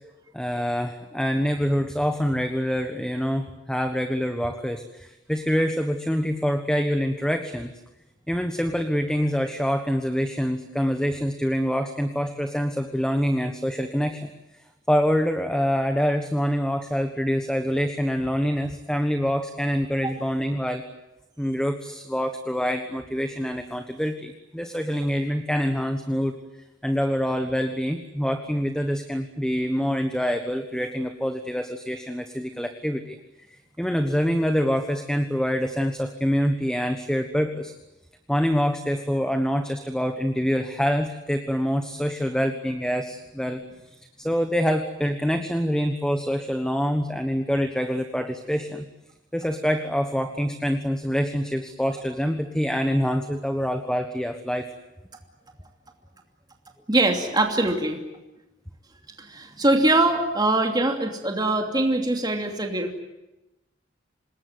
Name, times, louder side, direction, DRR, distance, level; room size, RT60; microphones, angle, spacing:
voice 1, 0.3-7.7 8.3-20.8 21.4-26.4 26.8-33.2 33.5-37.7 38.3-48.9 49.3-54.7, equal, 5° left, 7 dB, 1.3 m, -26 dB
voice 2, 56.9-58.0 59.2-63.0, right 2 dB, 20° right, 3 dB, 2.7 m, -22 dB
26.5 x 20.5 x 9.5 m, 0.96 s
head